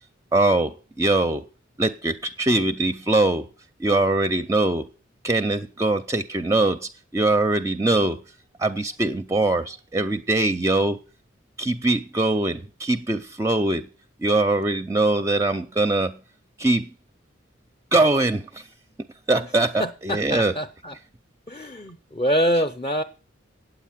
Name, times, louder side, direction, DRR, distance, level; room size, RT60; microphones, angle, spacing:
voice 1, 0.3-1.4 1.8-3.5 3.8-4.9 5.2-8.2 8.6-11.0 11.6-13.9 14.2-16.1 16.6-16.9 17.9-18.6 19.3-20.5, right 2 dB, 15° right, 0.5 m, -22 dB
voice 2, 19.8-21.0 21.5-23.0, equal, 25° left, 0.6 m, -25 dB
9.1 x 8.1 x 7.3 m
head